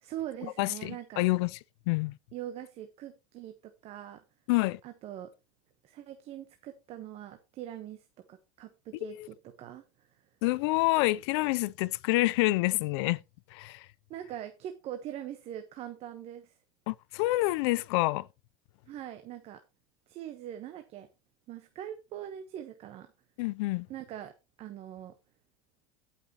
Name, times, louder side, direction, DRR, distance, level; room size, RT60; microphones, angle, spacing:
voice 1, 0.0-1.2 2.3-4.2 4.8-5.3 5.8-10.2 14.1-16.6 18.9-19.6 20.1-21.1 21.5-23.1 23.9-25.1, right 11 dB, 45° right, 1.1 m, -42 dB
voice 2, 0.6-1.5 1.9-2.2 4.5-4.8 9.0-9.3 10.4-13.2 13.5-13.9 16.9-18.3 23.4-23.9, left 20 dB, 75° left, 0.5 m, -27 dB
16.5 x 5.8 x 2.9 m
supercardioid pair, 125°, 14 cm